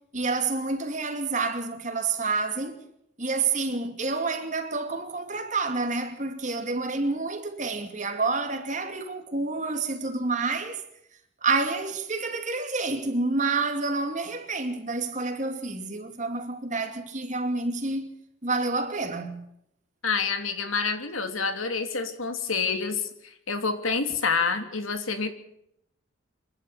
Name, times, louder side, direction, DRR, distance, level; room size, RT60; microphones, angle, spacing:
voice 1, 0.1-2.8 3.2-10.8 11.4-18.1 18.4-19.4, right 3 dB, 35° right, 2.6 m, -28 dB
voice 2, 20.0-25.3, left 5 dB, 90° left, 3.1 m, -28 dB
26.5 x 11.5 x 8.9 m
head